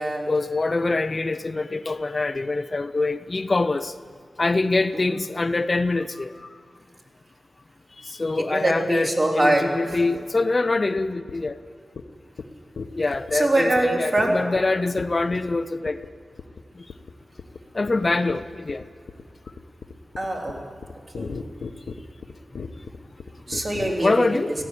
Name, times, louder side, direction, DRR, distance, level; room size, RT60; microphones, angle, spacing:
voice 1, 0.3-3.9 4.4-6.4 8.0-11.6 13.0-16.0 17.7-18.9 24.0-24.5, left 3 dB, 35° left, 11 dB, 0.6 m, -24 dB
voice 2, 8.5-9.9 13.3-14.4 20.2-20.6 21.2-21.4 23.5-24.4, right 1 dB, 40° right, -2 dB, 4.0 m, -23 dB
sound 1, 11.0-11.1 11.3-11.5 12.0-12.1 12.4-12.5 12.8-13.3 13.8-13.9 14.2-14.3 14.6-14.7 15.0-15.5 15.9-16.1 16.4-16.6 16.9-17.1 17.4-17.6 17.9-23.9, left 5 dB, 80° left, 1.1 m, -36 dB
17.0 x 16.0 x 10.0 m, 2.2 s
wide cardioid pair, 90°, 0 cm